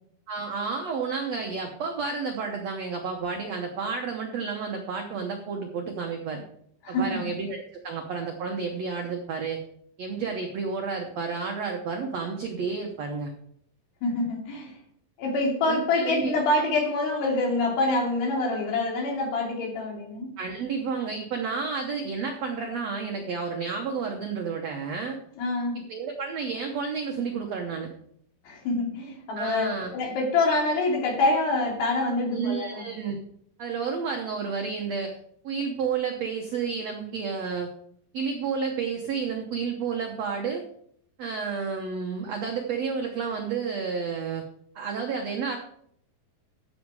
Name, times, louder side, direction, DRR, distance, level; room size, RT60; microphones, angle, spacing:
voice 1, 0.3-6.4 6.9-9.6 10.0-13.3 15.7-16.3 20.4-25.2 25.7-27.9 29.4-29.9 32.3-33.2 33.6-35.2 35.4-37.7 38.1-40.6 41.2-44.4 44.7-45.6, right 5 dB, 90° right, 3 dB, 1.4 m, -31 dB
voice 2, 6.8-7.3 14.0-14.7 15.2-20.3 25.4-25.8 28.4-29.7 29.9-32.9, left 2 dB, 85° left, -1 dB, 4.9 m, -26 dB
15.0 x 6.5 x 4.8 m, 0.68 s
omnidirectional pair, 4.7 m